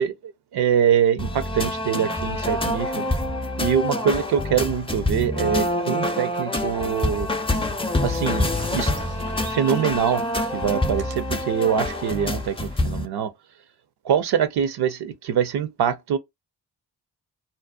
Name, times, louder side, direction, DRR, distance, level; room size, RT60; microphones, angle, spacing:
voice 1, 0.0-3.0 3.6-7.3 8.0-8.9 9.5-10.2 10.5-13.3 14.0-16.2, right 8 dB, 65° right, 0.6 m, -24 dB
sound 1, 1.2-13.1, left 1 dB, 15° left, 0.5 m, -26 dB
sound 2, 7.4-12.9, right 3 dB, 85° right, 0.9 m, -45 dB
2.6 x 2.0 x 2.3 m
supercardioid pair, 40°, 43 cm